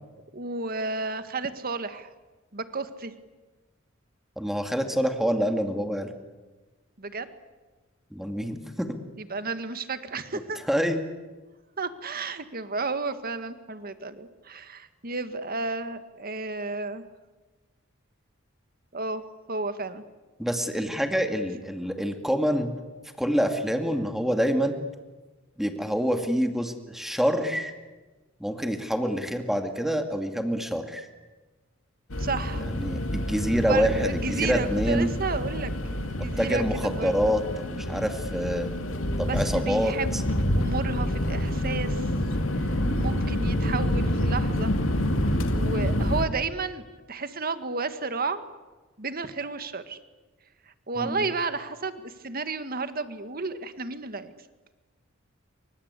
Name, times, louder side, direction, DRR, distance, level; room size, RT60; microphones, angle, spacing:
voice 1, 0.3-2.1 2.5-3.1 7.0-7.3 9.2-10.6 11.8-17.0 18.9-19.2 19.5-20.0 32.2-32.7 33.6-35.7 36.0-37.3 39.3-40.2 40.5-42.3 42.5-44.7 45.5-48.4 49.0-50.0 50.9-54.3, right 3 dB, 50° right, 10 dB, 1.8 m, -32 dB
voice 2, 4.4-6.1 8.1-8.9 10.7-11.0 20.4-22.7 23.2-24.8 25.6-27.7 28.4-31.1 32.7-35.1 36.4-38.7 39.2-40.2 42.8-43.1 51.0-51.2, equal, ahead, 5 dB, 2.4 m, -26 dB
sound 1, 32.1-46.2, left 1 dB, 75° left, 2.5 m, -27 dB
28.0 x 25.0 x 8.4 m, 1.2 s
head